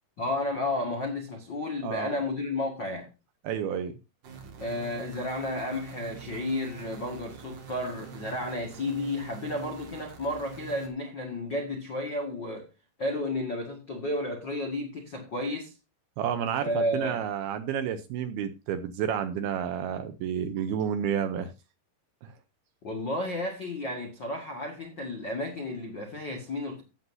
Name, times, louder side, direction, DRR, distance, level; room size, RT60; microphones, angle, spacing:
voice 1, 0.2-3.1 4.6-12.7 13.0-15.7 16.6-17.2 22.8-26.8, left 1 dB, 75° left, 1.0 m, -32 dB
voice 2, 1.8-2.2 3.4-3.9 16.2-21.5 22.2-22.3, right 8 dB, 80° right, 2.3 m, -30 dB
sound 1, 4.2-10.9, right 7 dB, 50° right, 3.0 m, -45 dB
16.0 x 7.7 x 2.7 m
omnidirectional pair, 5.2 m